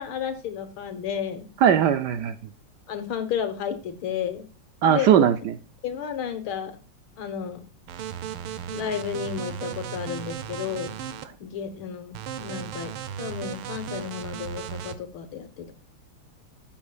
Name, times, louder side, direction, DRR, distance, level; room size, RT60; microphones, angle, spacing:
voice 1, 0.0-1.5 2.9-4.5 4.8-5.3 5.8-6.7 7.2-7.6 8.7-11.0 11.4-12.9 13.2-15.7, left 8 dB, 75° left, 9 dB, 2.2 m, -32 dB
voice 2, 1.6-2.4 4.8-5.5, right 9 dB, 70° right, 11 dB, 1.1 m, -19 dB
sound 1, 7.9-11.3 12.1-15.0, right 8 dB, 90° right, 1.8 m, -35 dB
13.0 x 7.3 x 2.3 m, 0.35 s
omnidirectional pair, 2.3 m